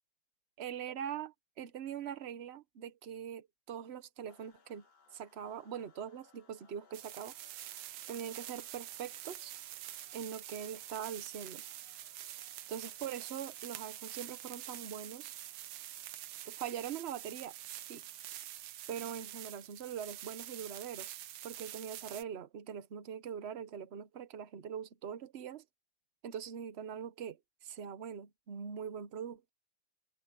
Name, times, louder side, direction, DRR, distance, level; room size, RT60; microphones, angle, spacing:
voice 1, 0.6-4.8 5.1-7.4 8.1-9.5 10.1-11.6 12.7-15.3 16.5-18.0 18.9-21.2 21.4-25.6 26.2-29.5, right 8 dB, 55° right, 0.7 m, -42 dB
sound 1, 4.3-18.5, left 6 dB, 70° left, 2.6 m, -68 dB
sound 2, 6.9-22.2, right 13 dB, 75° right, 1.6 m, -46 dB
omnidirectional pair, 2.3 m